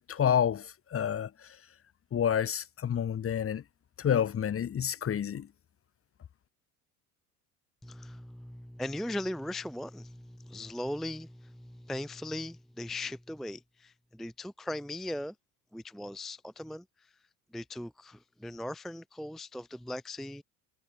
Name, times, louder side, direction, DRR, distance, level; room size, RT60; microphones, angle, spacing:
voice 1, 0.0-1.6 2.1-3.6 4.0-5.5, left 8 dB, 30° left, 1.0 m, -29 dB
voice 2, 7.8-15.3 15.7-17.1 17.5-20.4, left 1 dB, ahead, 0.5 m, -39 dB
hypercardioid pair, 70°, 46 cm